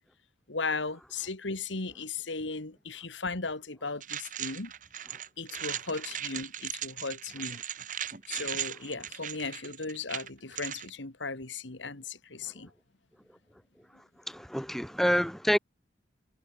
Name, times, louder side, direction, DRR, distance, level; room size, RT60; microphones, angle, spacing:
voice 1, 0.5-4.7 5.4-7.6 8.3-12.7, left 4 dB, 85° left, 2.2 m, -36 dB
sound 1, 4.0-10.9, right 10 dB, 45° right, 1.5 m, -38 dB
voice 2, 14.0-15.6, equal, ahead, 2.7 m, -28 dB
head